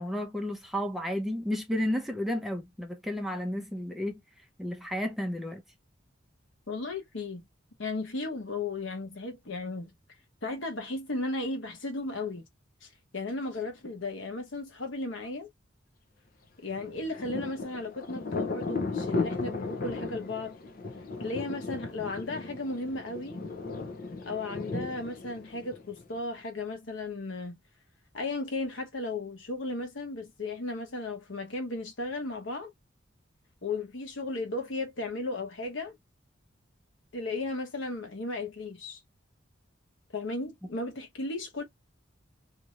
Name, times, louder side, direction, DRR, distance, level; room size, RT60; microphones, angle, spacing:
voice 1, 0.0-4.2 4.6-5.6, left 1 dB, ahead, 0.7 m, -32 dB
voice 2, 6.7-7.4 7.8-9.9 10.4-12.4 12.8-15.5 16.6-20.6 21.2-23.4 24.3-27.6 28.1-32.7 33.6-35.9 37.1-39.0 40.1-41.6, left 2 dB, 85° left, 1.1 m, -35 dB
Thunder, 16.7-26.2, left 3 dB, 50° left, 0.6 m, -36 dB
2.7 x 2.6 x 3.0 m
head